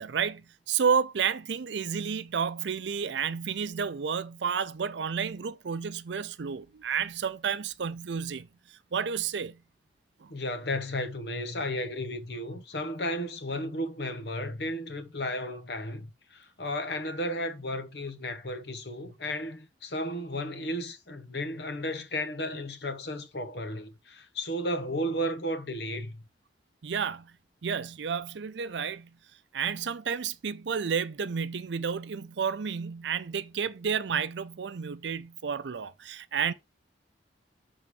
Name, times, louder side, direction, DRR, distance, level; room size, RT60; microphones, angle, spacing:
voice 1, 0.0-9.6 10.2-10.3 26.8-27.3 27.6-29.2 29.5-36.5, right 6 dB, 75° right, 0.5 m, -31 dB
voice 2, 10.3-26.2, left 1 dB, 60° left, 1.0 m, -34 dB
6.9 x 3.8 x 4.7 m
head